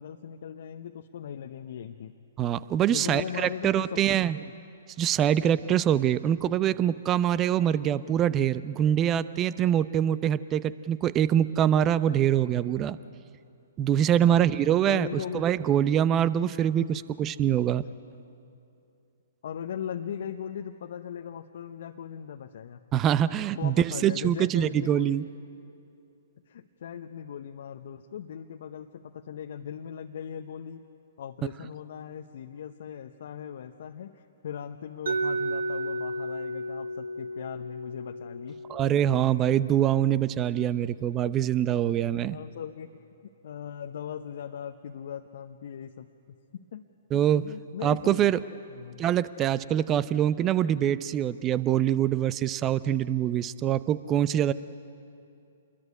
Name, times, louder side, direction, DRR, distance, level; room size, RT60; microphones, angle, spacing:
voice 1, 0.0-2.1 2.9-4.3 14.1-14.5 14.9-15.5 16.8-17.0 19.4-22.8 23.6-25.1 26.5-30.8 31.2-38.6 42.3-43.0 43.4-46.8 47.1-48.3 48.7-49.0, left 8 dB, 60° left, 4 dB, 1.0 m, -39 dB
voice 2, 2.4-4.4 5.0-13.0 13.8-15.1 15.3-17.8 22.9-25.3 38.7-42.4 47.1-47.4 47.8-48.4 49.0-54.5, right 10 dB, 25° right, 16 dB, 0.8 m, -24 dB
Mallet percussion, 35.1-40.9, right 1 dB, 65° right, 1.3 m, -34 dB
27.5 x 21.5 x 9.9 m, 2.7 s
figure-of-eight pair, 120°, 0 cm